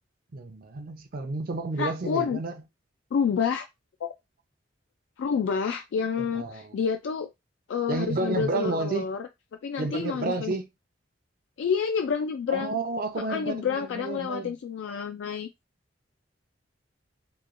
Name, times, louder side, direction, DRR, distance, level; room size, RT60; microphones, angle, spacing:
voice 1, 0.3-2.6 6.3-6.8 7.9-9.1 9.8-10.7 12.5-14.6, right 3 dB, 50° right, 0.6 m, -31 dB
voice 2, 1.8-2.4 3.1-3.7 4.0-4.1 5.2-7.3 7.7-9.3 9.6-10.6 11.6-12.8 13.3-15.5, left 6 dB, 75° left, 0.3 m, -28 dB
3.0 x 2.3 x 2.5 m
head